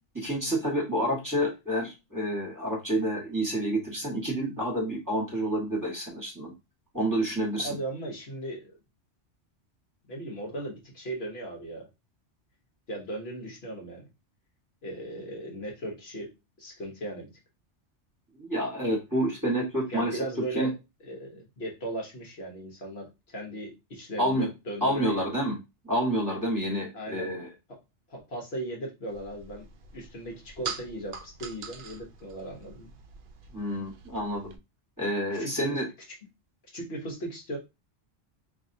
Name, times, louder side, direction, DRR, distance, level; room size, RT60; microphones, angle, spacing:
voice 1, 0.1-6.5 6.9-7.8 18.3-20.2 20.5-20.7 24.2-24.4 24.8-25.6 25.8-27.5 33.5-34.5 35.0-35.8, right 1 dB, 15° right, -4 dB, 1.3 m, -28 dB
voice 2, 7.5-8.7 10.1-11.9 12.9-14.1 14.8-16.3 16.6-17.3 19.9-20.7 21.0-25.3 26.9-27.3 27.7-27.8 28.1-29.7 29.9-32.9 35.3-35.8 36.1-36.2 36.7-37.6, right 1 dB, 60° left, 0 dB, 1.2 m, -37 dB
sound 1, 29.1-34.6, right 5 dB, 55° right, 0.7 m, -43 dB
4.6 x 2.7 x 2.6 m, 0.25 s
omnidirectional pair, 1.2 m